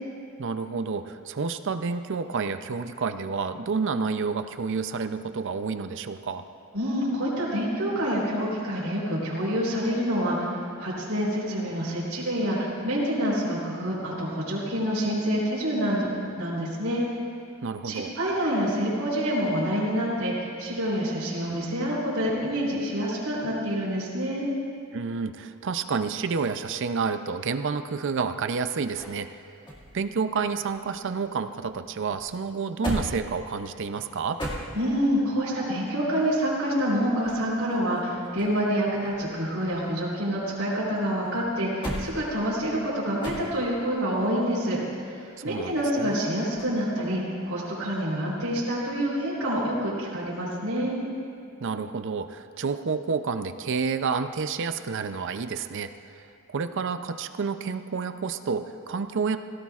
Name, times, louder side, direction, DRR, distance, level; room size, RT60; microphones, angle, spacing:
voice 1, 0.4-6.4 17.6-18.1 24.9-29.3 29.9-34.4 45.4-46.2 51.6-55.9 56.5-59.4, right 5 dB, 60° right, 10 dB, 0.5 m, -29 dB
voice 2, 6.7-10.5 10.8-17.0 17.8-24.5 34.7-44.8 45.0-51.0, equal, 80° right, -7 dB, 3.9 m, -27 dB
sound 1, 28.2-31.3 31.6-35.2 37.0-38.7 39.0-40.8 41.3-43.9 46.5-46.8, equal, 25° left, 2.0 m, -38 dB
18.0 x 16.5 x 2.4 m, 2.4 s
head